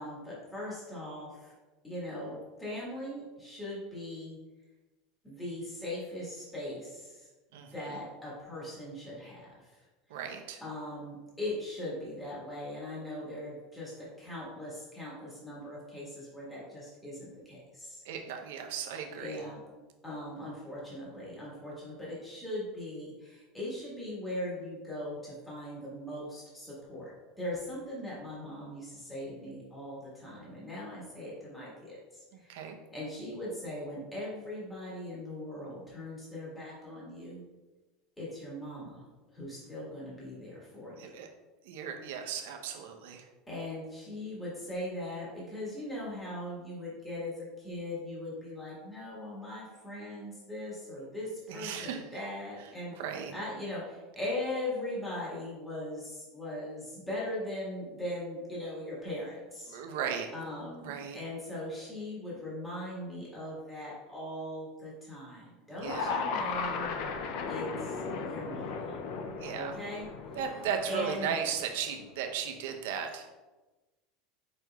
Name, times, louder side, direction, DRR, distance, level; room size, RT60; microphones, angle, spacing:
voice 1, 0.0-1.5 1.8-4.4 5.2-7.3 7.5-9.8 10.1-13.9 14.2-18.0 19.2-19.6 20.0-32.6 32.9-37.4 38.2-39.0 39.3-41.2 43.5-59.8 60.3-66.9 67.5-69.0 69.5-70.6 70.9-71.3, left 1 dB, 10° left, -7 dB, 1.5 m, -40 dB
voice 2, 10.1-10.6 18.0-19.4 32.3-32.8 41.0-41.3 41.6-43.2 51.5-52.0 53.0-53.3 59.7-60.3 60.8-61.2 65.8-66.2 69.4-69.8 70.3-73.3, right 7 dB, 80° right, 3 dB, 0.7 m, -36 dB
sound 1, 65.8-72.1, left 4 dB, 55° left, 0.4 m, -36 dB
5.2 x 4.5 x 2.3 m, 1.2 s
supercardioid pair, 155°, 0 cm